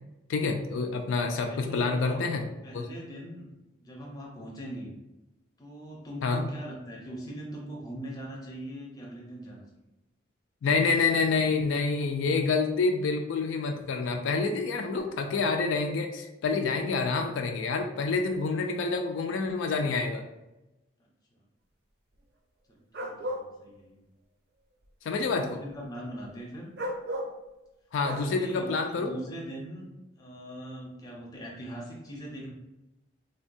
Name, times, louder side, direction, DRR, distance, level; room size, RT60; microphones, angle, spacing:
voice 1, 0.3-2.5 2.7-2.9 6.2-6.5 10.6-20.2 25.0-25.6 27.9-29.1, left 4 dB, 80° left, 4 dB, 0.3 m, -27 dB
voice 2, 1.5-2.3 2.6-3.5 3.8-4.9 5.6-9.7 21.3-21.4 22.7-24.0 25.2-26.7 28.0-29.9 30.2-32.5, right 1 dB, 20° left, -2 dB, 0.5 m, -41 dB
sound 1, 22.9-23.4 26.8-27.3 28.0-28.3, equal, 55° right, 0.4 m, -33 dB
3.4 x 2.2 x 2.6 m, 0.98 s
head